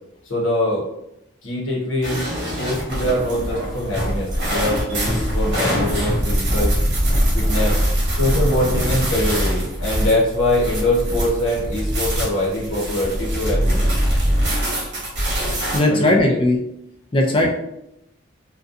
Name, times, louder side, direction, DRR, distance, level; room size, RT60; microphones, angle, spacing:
voice 1, 0.3-0.9 1.4-6.8 7.3-7.8 8.1-13.9 15.9-16.4, left 1 dB, 80° left, -4 dB, 0.8 m, -23 dB
sound 1, 2.0-15.8, equal, 60° right, 1.0 m, -22 dB
voice 2, 15.7-16.6 17.1-17.5, left 1 dB, 25° left, 2 dB, 0.3 m, -17 dB
2.5 x 2.2 x 2.4 m, 0.83 s
head